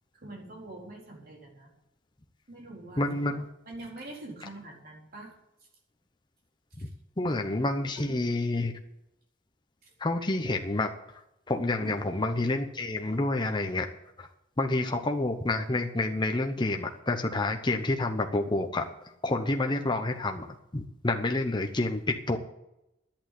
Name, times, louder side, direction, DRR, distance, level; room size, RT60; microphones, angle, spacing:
voice 1, 0.1-1.7 2.5-3.1 3.7-5.3 6.8-6.9 8.0-8.2 9.8-9.9 11.8-12.0, right 2 dB, 50° right, -2 dB, 4.2 m, -44 dB
voice 2, 3.0-3.5 6.8-6.9 7.2-8.7 10.0-11.2 11.5-13.9 14.2-14.3 14.6-18.9 19.2-22.4, left 2 dB, 25° left, 3 dB, 0.8 m, -29 dB
11.0 x 8.8 x 7.7 m, 0.89 s
head